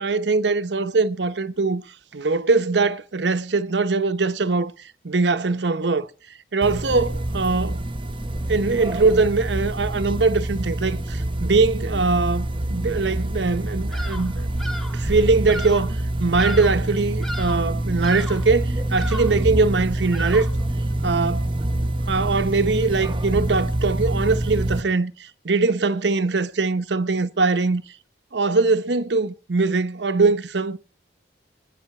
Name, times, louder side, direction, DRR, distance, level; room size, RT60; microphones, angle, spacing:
voice 1, 0.0-1.8 2.1-4.7 5.0-6.1 6.5-7.8 8.5-14.5 14.9-20.5 21.0-21.5 22.1-27.8 28.3-30.8, right 3 dB, 80° right, 0.9 m, -22 dB
sound 1, 6.6-24.8, right 1 dB, 30° right, 0.9 m, -26 dB
Bird vocalization bird call bird song, 13.9-14.3 14.6-15.0 15.5-15.9 16.4-16.9 17.2-17.7 18.0-18.5 18.9-19.4 20.1-20.6, left 1 dB, ahead, 1.5 m, -35 dB
24.5 x 9.3 x 4.3 m
head